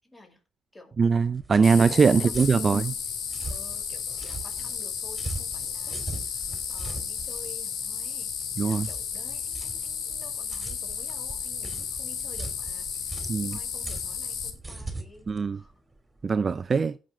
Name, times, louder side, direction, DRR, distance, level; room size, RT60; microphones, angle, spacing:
voice 1, 0.0-0.4 0.7-1.0 1.5-2.9 3.5-6.4 6.7-8.3 8.6-12.9 13.4-15.7, left 2 dB, 10° left, 5.5 m, -51 dB
sound 1, 1.0-16.2, right 2 dB, 15° right, 2.7 m, -40 dB
voice 2, 1.0-2.9 8.6-8.9 13.3-13.6 15.3-15.6 16.2-16.9, right 5 dB, 40° right, 0.4 m, -22 dB
sound 2, 1.6-14.5, left 7 dB, 80° left, 2.2 m, -33 dB
16.0 x 6.4 x 3.5 m
cardioid pair, 90°, 0 cm